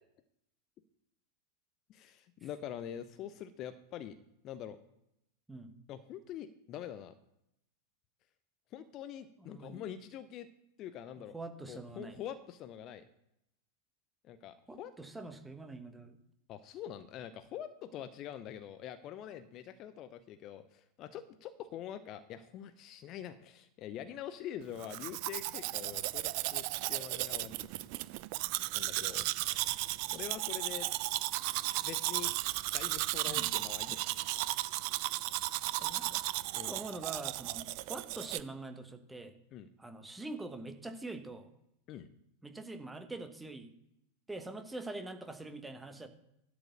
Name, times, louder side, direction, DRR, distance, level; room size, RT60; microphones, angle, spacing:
voice 1, 1.9-4.2 4.4-4.8 5.9-7.1 8.7-10.5 10.8-11.3 11.7-13.0 14.2-14.9 16.5-27.7 28.7-30.9 31.8-32.3 32.7-34.1 36.5-36.8 39.5-39.7 41.9-42.1, left 10 dB, 35° left, 12 dB, 0.6 m, -45 dB
voice 2, 9.4-9.9 11.2-12.2 14.7-16.2 33.3-33.5 35.8-36.2 36.6-39.3 39.8-41.5 42.4-43.7 44.3-46.1, right 2 dB, 5° right, 8 dB, 1.1 m, -44 dB
Domestic sounds home sounds, 24.8-38.4, right 19 dB, 45° right, 0.4 m, -35 dB
11.5 x 4.8 x 6.4 m, 0.81 s
figure-of-eight pair, 90°, 0 cm